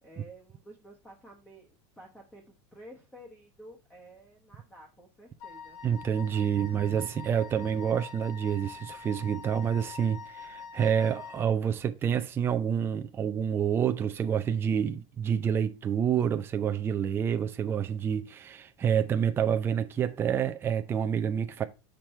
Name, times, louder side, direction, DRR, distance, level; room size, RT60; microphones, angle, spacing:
voice 1, 0.0-1.7 2.0-2.4 2.7-5.8, right 1 dB, 10° left, 1.2 m, -51 dB
Wind instrument woodwind instrument, 5.4-11.5, left 6 dB, 45° left, 1.2 m, -45 dB
voice 2, 5.8-21.6, right 8 dB, 15° right, 0.5 m, -28 dB
6.2 x 5.2 x 4.3 m
supercardioid pair, 165°, 16 cm